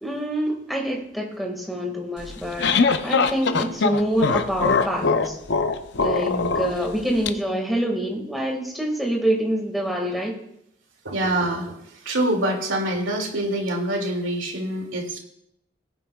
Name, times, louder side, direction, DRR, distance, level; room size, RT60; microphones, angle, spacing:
voice 1, 0.0-2.7 3.0-5.4 6.0-6.3 6.5-10.4, right 1 dB, ahead, -1 dB, 1.9 m, -26 dB
sound 1, 2.2-7.3, left 4 dB, 60° left, 0.6 m, -22 dB
voice 2, 11.0-15.2, right 1 dB, 80° right, 2 dB, 2.4 m, -26 dB
19.5 x 9.1 x 2.3 m, 0.77 s
head